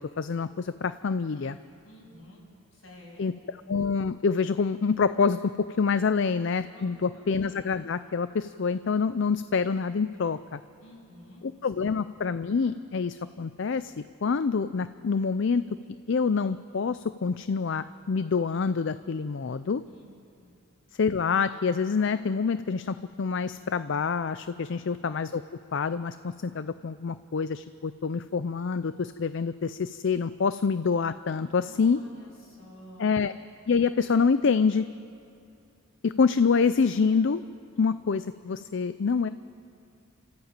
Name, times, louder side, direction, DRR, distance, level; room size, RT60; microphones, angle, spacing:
voice 1, 0.0-1.6 3.2-3.3 3.7-10.6 11.4-15.6 16.1-19.8 21.0-25.4 25.7-32.0 33.0-33.3 33.7-34.9 36.0-37.4 37.8-39.3, left 5 dB, 55° left, 13 dB, 0.4 m, -26 dB
voice 2, 1.8-2.4 2.7-3.4 6.7-7.3 10.8-11.9 19.9-20.0 20.4-20.5 24.7-24.8 31.6-33.2 37.7-37.8, equal, 75° left, -3 dB, 7.6 m, -51 dB
29.5 x 14.0 x 8.9 m, 2.6 s
head